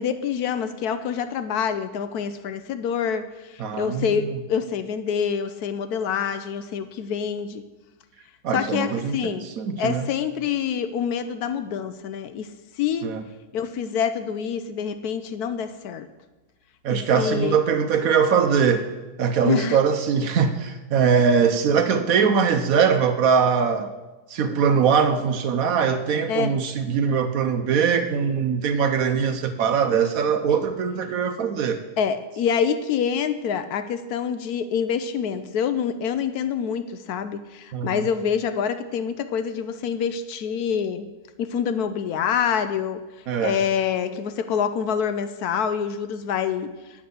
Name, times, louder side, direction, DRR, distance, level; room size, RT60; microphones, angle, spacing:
voice 1, 0.0-7.6 8.5-9.5 9.8-12.5 12.8-13.1 13.5-16.1 16.9-17.6 19.4-19.8 26.3-26.5 32.0-41.1 41.4-43.0 43.4-46.7, left 7 dB, 70° left, 11 dB, 1.0 m, -26 dB
voice 2, 3.6-4.4 8.4-10.1 13.0-13.2 16.8-18.9 19.2-23.9 24.3-31.8 37.7-38.1 43.3-43.6, right 6 dB, 65° right, 8 dB, 1.0 m, -22 dB
8.6 x 5.9 x 8.1 m, 1.1 s
omnidirectional pair, 1.8 m